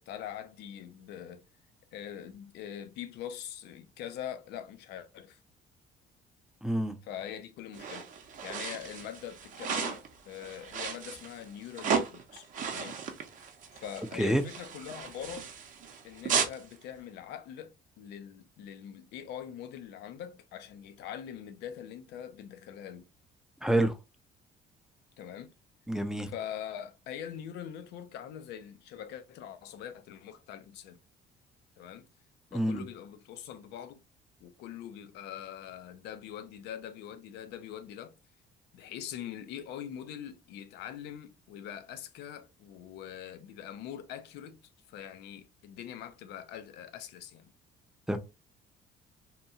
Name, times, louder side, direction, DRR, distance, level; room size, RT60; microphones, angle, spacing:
voice 1, 0.0-1.4 1.9-5.4 7.0-8.1 8.4-13.0 13.7-15.5 16.0-23.1 25.2-25.5 26.3-31.0 31.8-32.1 32.5-34.0 34.4-38.1 38.7-44.6 44.9-47.5, left 9 dB, 80° left, 0.5 m, -43 dB
voice 2, 6.6-7.0 14.1-14.4 23.6-24.0 25.9-26.3 32.5-32.8 48.1-48.2, right 1 dB, 5° right, 0.4 m, -27 dB
sound 1, 7.7-16.6, right 6 dB, 50° right, 0.6 m, -35 dB
2.8 x 2.3 x 2.7 m
cardioid pair, 110°, 17 cm